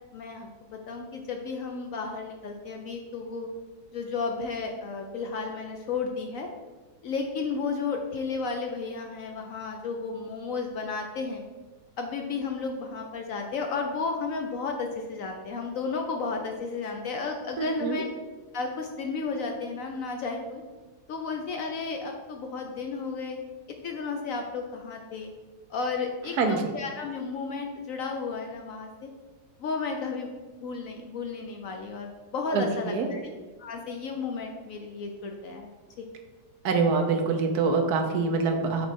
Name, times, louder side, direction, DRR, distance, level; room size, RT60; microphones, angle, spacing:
voice 1, 0.1-3.5 3.9-6.5 7.0-11.4 12.0-18.1 18.5-20.6 21.1-23.4 23.8-25.3 25.7-29.1 29.6-30.3 30.6-33.3 33.6-35.7 36.0-36.1, left 4 dB, 65° left, 3 dB, 0.8 m, -33 dB
voice 2, 17.6-18.0 26.4-26.7 32.5-33.1 36.6-38.9, right 4 dB, 70° right, 4 dB, 1.2 m, -25 dB
6.2 x 3.2 x 5.1 m, 1.3 s
omnidirectional pair, 1.8 m